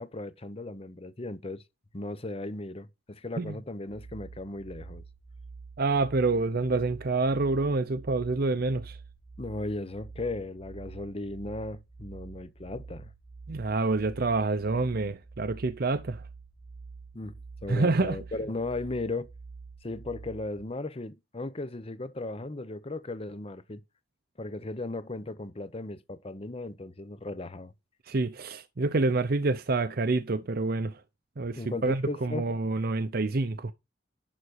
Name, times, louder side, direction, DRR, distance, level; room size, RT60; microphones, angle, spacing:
voice 1, 0.0-1.6 1.9-5.0 9.4-13.1 17.1-17.3 17.6-19.3 19.8-23.8 24.4-27.7 31.6-32.5, left 2 dB, 30° left, 0.8 m, -36 dB
sound 1, 3.9-20.7, right 4 dB, ahead, 1.4 m, -47 dB
voice 2, 5.8-9.0 13.5-16.2 17.7-18.2 28.1-30.9 31.4-33.7, right 3 dB, 50° right, 0.6 m, -27 dB
11.5 x 4.0 x 6.3 m
head